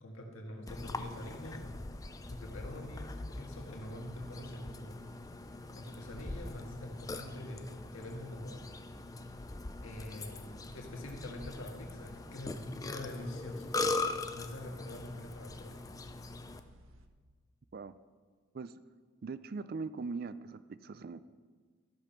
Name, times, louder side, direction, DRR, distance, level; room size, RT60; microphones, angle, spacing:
voice 1, 0.0-1.8 2.3-5.0 5.8-8.6 9.8-13.8 14.3-15.9, left 1 dB, 80° left, 1 dB, 1.9 m, -45 dB
Burping eructation, 0.7-16.6, left 3 dB, 15° left, 0.4 m, -41 dB
sound 1, 3.5-17.1, equal, 75° right, 0.8 m, -57 dB
voice 2, 19.2-21.2, right 4 dB, 45° right, 15 dB, 0.4 m, -41 dB
13.0 x 6.9 x 5.8 m, 1.5 s
head